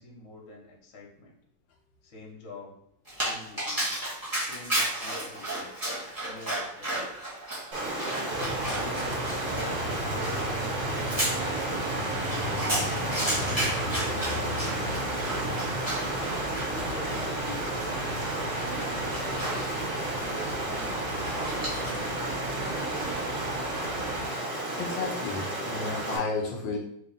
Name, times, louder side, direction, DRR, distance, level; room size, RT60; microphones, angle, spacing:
voice 1, 0.0-1.4 2.0-2.8 3.1-3.9 4.3-5.8 6.2-7.2 8.0-11.5 12.2-16.0 16.7-18.3 18.6-19.8 20.3-23.2, left 2 dB, 60° left, -1 dB, 0.8 m, -46 dB
Dog, 3.1-22.1, right 1 dB, 15° right, 0.8 m, -34 dB
Stream, 7.7-26.2, right 1 dB, 45° right, 1.0 m, -33 dB
sound 1, 8.3-24.3, right 1 dB, 70° right, 0.7 m, -35 dB
voice 2, 24.8-26.8, left 4 dB, 75° left, 0 dB, 1.2 m, -32 dB
3.1 x 2.9 x 3.9 m, 0.74 s
omnidirectional pair, 2.3 m